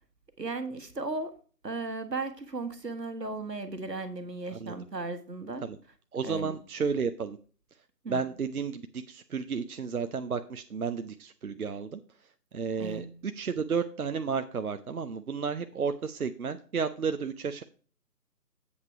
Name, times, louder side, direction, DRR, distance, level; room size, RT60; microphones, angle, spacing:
voice 1, 0.4-1.3 1.6-5.6 6.2-6.6 8.0-8.2 12.8-13.1, right 3 dB, 80° right, 9 dB, 1.5 m, -36 dB
voice 2, 6.1-7.4 8.1-12.0 12.5-17.6, right 5 dB, 65° right, 9 dB, 0.6 m, -32 dB
8.1 x 5.4 x 4.8 m, 0.40 s
figure-of-eight pair, 155°, 49 cm